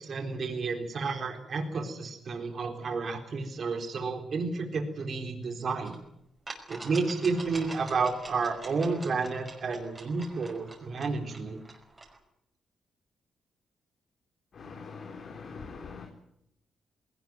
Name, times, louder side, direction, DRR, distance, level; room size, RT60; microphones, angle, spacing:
voice 1, 0.0-6.0 6.7-11.6, right 4 dB, 50° right, 4 dB, 4.0 m, -31 dB
sound 1, 5.9-6.0 6.5-12.2, right 2 dB, 25° right, 5.5 m, -46 dB
voice 2, 14.5-16.1, left 5 dB, 55° left, 3 dB, 3.5 m, -43 dB
20.0 x 18.5 x 9.4 m, 0.77 s
cardioid pair, 85°, 0 cm